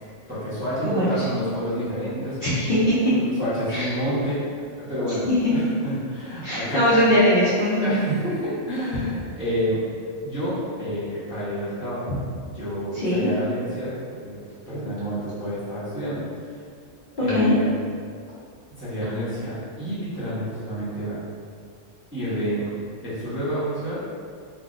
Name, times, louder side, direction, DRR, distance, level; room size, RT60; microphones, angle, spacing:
voice 1, 0.3-2.4 3.1-4.4 4.7-7.0 7.8-9.8 10.2-12.1 12.5-13.9 14.2-14.4 14.7-16.2 17.2-17.7 18.8-21.2 22.1-22.6 23.0-24.1, equal, 10° right, -12 dB, 0.6 m, -29 dB
voice 2, 0.8-1.2 2.4-3.1 3.7-3.9 6.4-7.9 12.1-12.2 12.9-13.3 17.3-17.5, equal, 50° left, -11 dB, 0.7 m, -21 dB
3.6 x 2.3 x 2.4 m, 2.2 s
omnidirectional pair, 1.3 m